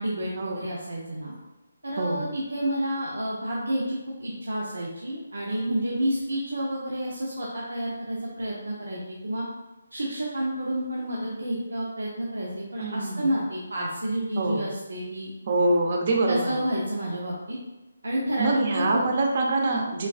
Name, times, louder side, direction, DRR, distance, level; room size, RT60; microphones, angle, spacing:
voice 1, 0.0-1.3 1.8-9.4 9.9-15.3 16.3-17.6 18.0-19.1, right 1 dB, 90° right, -4 dB, 0.8 m, -30 dB
voice 2, 12.8-13.3 14.4-14.6 15.5-16.6 18.4-20.1, right 2 dB, 45° right, 1 dB, 0.7 m, -25 dB
6.4 x 2.4 x 2.4 m, 1.1 s
hypercardioid pair, 160°, 0 cm